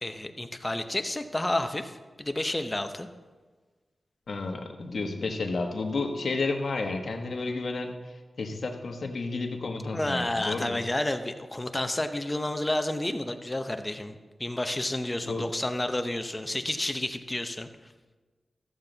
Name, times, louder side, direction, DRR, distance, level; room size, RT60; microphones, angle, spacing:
voice 1, 0.0-3.1 9.9-17.7, left 1 dB, 20° left, 7 dB, 0.7 m, -30 dB
voice 2, 4.3-7.9 8.4-10.8 15.3-15.4, left 3 dB, 65° left, 3 dB, 1.2 m, -31 dB
14.0 x 7.4 x 3.9 m, 1.3 s
wide cardioid pair, 100°, 0 cm